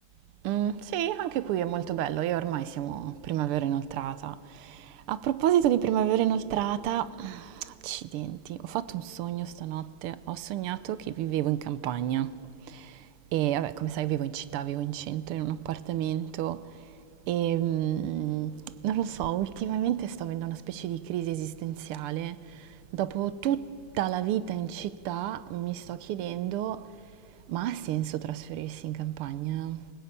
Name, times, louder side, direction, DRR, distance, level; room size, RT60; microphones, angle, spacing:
voice 1, 0.4-12.3 12.7-12.9 13.3-16.6 17.3-18.5 18.8-22.4 22.9-26.9 27.5-29.8, right 12 dB, 85° right, 1.6 m, -30 dB
26.0 x 18.0 x 8.6 m
omnidirectional pair, 2.4 m